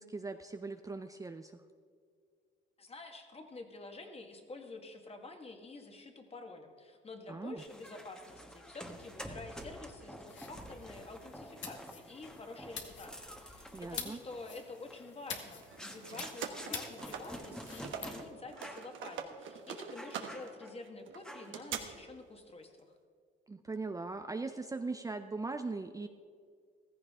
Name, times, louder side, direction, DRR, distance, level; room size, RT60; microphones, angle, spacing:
voice 1, 0.0-1.6 7.3-7.6 13.7-14.2 23.5-26.1, right 3 dB, 15° right, 7 dB, 0.5 m, -40 dB
voice 2, 2.8-22.9, left 3 dB, 30° left, 4 dB, 1.7 m, -49 dB
sound 1, 7.6-18.2 18.6-18.9 19.3-19.4 20.0-20.8 21.2-21.7, equal, 5° left, 1.3 m, -49 dB
sound 2, 10.3-18.1, left 6 dB, 70° left, 1.7 m, -48 dB
sound 3, 15.6-18.2 18.5-21.8, right 8 dB, 80° right, 1.2 m, -43 dB
15.0 x 14.5 x 3.7 m, 2.1 s
cardioid pair, 90°, 20 cm